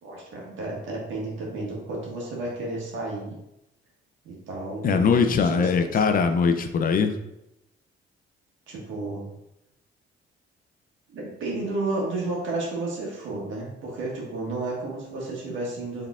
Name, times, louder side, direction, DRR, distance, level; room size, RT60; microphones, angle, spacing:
voice 1, 0.0-3.4 4.2-5.2 5.5-6.0 8.7-9.3 11.1-16.1, right 2 dB, 80° right, -3 dB, 1.5 m, -32 dB
voice 2, 4.8-7.1, left 5 dB, 45° left, 7 dB, 0.4 m, -21 dB
4.6 x 3.5 x 2.3 m, 0.86 s
cardioid pair, 90°, 20 cm